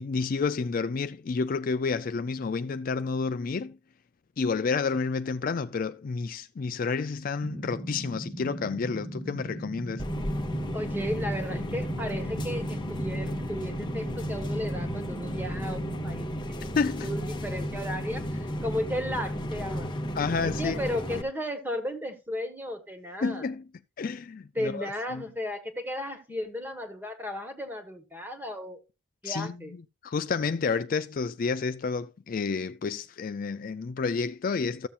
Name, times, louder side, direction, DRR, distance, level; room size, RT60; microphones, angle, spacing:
voice 1, 0.0-3.8 4.4-10.0 16.8-17.1 20.1-20.8 23.2-23.7 24.0-25.2 29.2-29.6 30.0-34.9, left 4 dB, 45° left, 0.4 m, -30 dB
sound 1, 7.4-16.0, right 1 dB, 30° right, 1.5 m, -39 dB
sound 2, 10.0-21.2, equal, 20° left, 0.9 m, -33 dB
voice 2, 10.7-16.3 16.6-19.9 20.4-23.5 24.5-28.8 29.2-29.7, left 1 dB, 10° right, 1.4 m, -34 dB
14.0 x 7.1 x 2.5 m
head